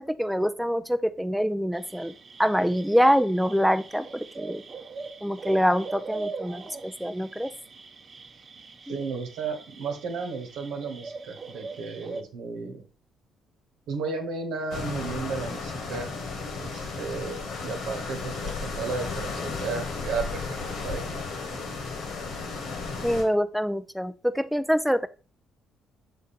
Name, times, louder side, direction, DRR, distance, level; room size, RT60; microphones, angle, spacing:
voice 1, 0.0-2.1 2.4-4.6 5.2-7.5 8.9-9.0 23.0-25.1, equal, ahead, 11 dB, 0.5 m, -25 dB
sound 1, 1.7-12.2, right 4 dB, 45° right, 0.8 m, -41 dB
voice 2, 8.9-12.8 13.9-16.1 16.6-21.1, right 4 dB, 75° right, 5 dB, 1.2 m, -34 dB
sound 2, 14.7-23.2, left 4 dB, 70° left, 1.6 m, -34 dB
6.4 x 3.6 x 4.2 m, 0.35 s
hypercardioid pair, 50°, 0 cm